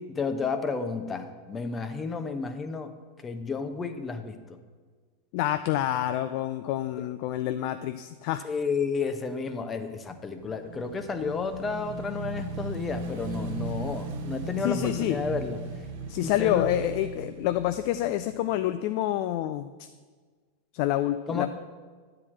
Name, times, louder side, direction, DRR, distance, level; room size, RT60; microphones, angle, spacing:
voice 1, 0.0-2.9 3.2-4.6 8.4-15.6 16.2-16.6 21.3-21.5, left 5 dB, 20° left, 8 dB, 0.9 m, -32 dB
voice 2, 5.3-8.4 14.6-15.2 16.1-19.9 20.7-21.5, left 13 dB, 50° left, 10 dB, 0.4 m, -27 dB
Motorcycle / Engine, 10.2-18.7, right 3 dB, 60° right, 1.4 m, -37 dB
9.7 x 4.8 x 7.4 m, 1.5 s
figure-of-eight pair, 90°, 0 cm